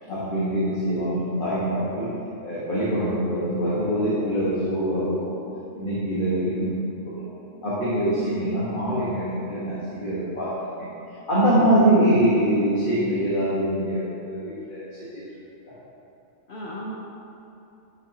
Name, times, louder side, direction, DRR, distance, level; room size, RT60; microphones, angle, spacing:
voice 1, 0.1-2.1 2.4-5.4 5.8-6.7 7.2-7.3 7.6-10.5 11.3-14.8 15.1-15.2 15.6-15.7, right 1 dB, 40° left, -10 dB, 1.6 m, -23 dB
voice 2, 16.5-16.9, equal, 55° left, -5 dB, 1.0 m, -37 dB
10.5 x 5.9 x 2.9 m, 2.8 s
omnidirectional pair, 1.4 m